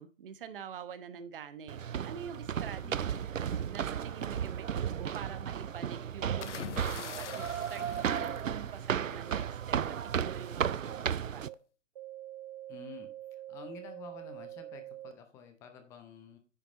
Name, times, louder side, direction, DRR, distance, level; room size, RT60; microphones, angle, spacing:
voice 1, 0.0-3.2 3.7-9.8 10.0-11.5, right 7 dB, 45° right, 11 dB, 1.1 m, -46 dB
sound 1, 1.7-11.5, right 8 dB, 90° right, 0.6 m, -34 dB
voice 2, 2.8-3.3 12.7-13.1 13.5-16.4, left 5 dB, 10° left, 7 dB, 0.6 m, -50 dB
sound 2, 6.3-6.4 7.3-7.4 8.3-8.4 9.3-9.4 10.3-10.4 10.9-11.0 11.5-11.6 12.0-15.1, right 13 dB, 30° right, 0.8 m, -45 dB
sound 3, 6.4-9.2 10.4-10.7, left 10 dB, 70° left, 0.5 m, -44 dB
9.8 x 5.9 x 3.8 m, 0.34 s
figure-of-eight pair, 140°, 38 cm